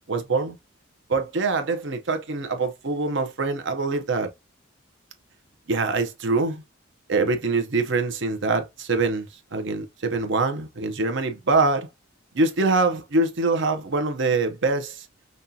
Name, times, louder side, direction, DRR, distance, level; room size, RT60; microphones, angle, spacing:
voice 1, 0.1-0.6 1.1-4.3 5.7-6.6 7.1-11.9 12.3-15.1, right 3 dB, 60° right, 0.8 m, -24 dB
5.3 x 2.4 x 2.7 m
head